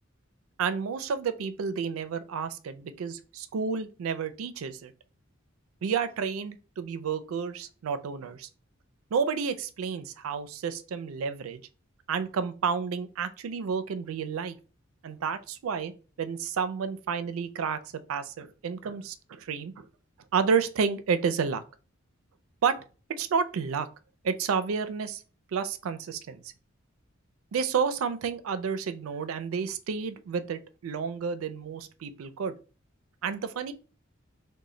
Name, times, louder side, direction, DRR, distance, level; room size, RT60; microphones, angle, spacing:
voice 1, 0.6-4.9 5.8-8.5 9.1-11.6 12.1-14.6 15.0-15.9 16.2-19.9 20.3-21.6 22.6-22.8 23.2-23.9 24.2-25.2 25.5-26.4 27.5-32.5 33.2-33.7, right 6 dB, 85° right, 0.4 m, -30 dB
3.8 x 2.1 x 3.1 m
head